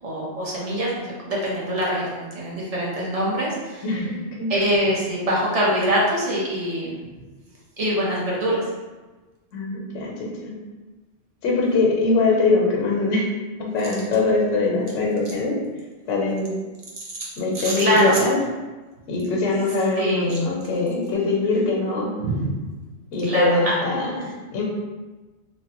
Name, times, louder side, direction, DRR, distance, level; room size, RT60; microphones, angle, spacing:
voice 1, 0.0-3.8 4.5-7.0 7.8-8.7 17.2-17.3 17.5-18.2 20.0-20.4 22.2-22.5 23.2-23.7 24.2-24.3, equal, 40° right, -5 dB, 0.7 m, -24 dB
voice 2, 3.8-4.1 4.4-4.5 9.5-10.5 11.4-13.3 13.6-15.5 16.1-16.5 17.4-18.3 19.1-22.1 23.1-24.6, left 3 dB, 80° left, -2 dB, 1.0 m, -22 dB
3.1 x 2.1 x 2.8 m, 1.2 s
omnidirectional pair, 1.2 m